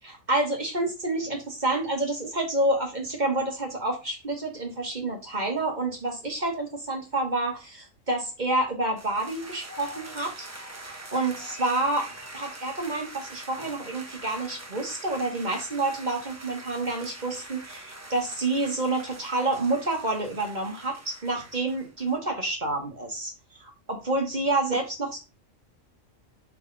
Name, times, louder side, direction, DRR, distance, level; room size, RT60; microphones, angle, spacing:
voice 1, 0.0-10.5 10.8-12.0 12.3-25.2, right 2 dB, 35° right, 1 dB, 1.6 m, -28 dB
sound 1, 9.0-22.2, right 2 dB, 15° right, 0.8 m, -44 dB
6.6 x 3.6 x 4.0 m, 0.27 s
omnidirectional pair, 1.4 m